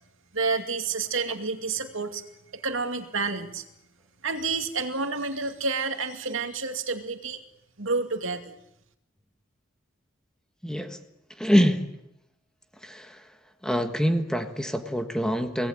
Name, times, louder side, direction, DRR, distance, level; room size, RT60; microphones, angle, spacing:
voice 1, 0.3-2.2 2.5-3.6 4.2-7.4 7.8-8.6, right 4 dB, 70° right, 6 dB, 2.4 m, -29 dB
voice 2, 10.6-11.0 11.4-11.8 12.8-13.2 13.6-15.7, equal, 5° left, 6 dB, 1.5 m, -25 dB
25.0 x 18.5 x 9.1 m, 0.80 s
head